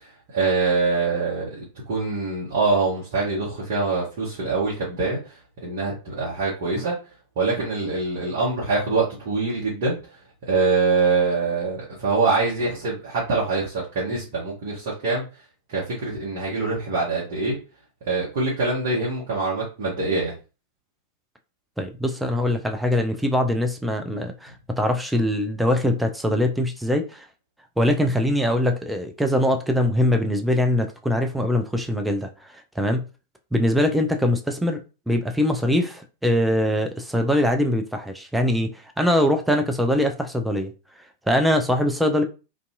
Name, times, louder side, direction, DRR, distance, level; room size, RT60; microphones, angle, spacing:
voice 1, 0.0-7.0 7.4-10.0 10.5-15.2 15.7-17.6 18.1-20.3, right 3 dB, 50° right, 0.9 m, -24 dB
voice 2, 21.8-27.3 27.8-32.3 32.8-33.0 33.5-34.8 35.1-40.7 41.3-42.2, left 1 dB, 5° right, 0.4 m, -22 dB
2.6 x 2.3 x 2.5 m
figure-of-eight pair, 90°, 0 cm